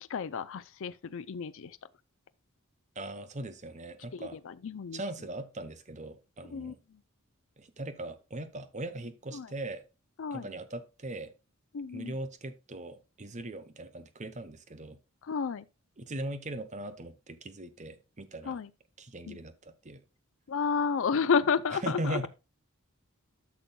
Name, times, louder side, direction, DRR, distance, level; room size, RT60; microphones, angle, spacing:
voice 1, 0.1-1.7 4.1-5.0 6.5-6.7 9.3-9.5 10.2-10.5 11.7-12.1 15.3-15.6 18.5-18.7 19.3-19.4 20.5-22.3, left 5 dB, 65° left, 0.5 m, -31 dB
voice 2, 3.0-4.4 4.9-6.8 7.6-9.8 10.3-11.3 11.9-15.0 16.0-18.6 19.0-20.0 21.7-22.3, right 1 dB, 35° right, 0.9 m, -39 dB
13.0 x 6.2 x 2.3 m
head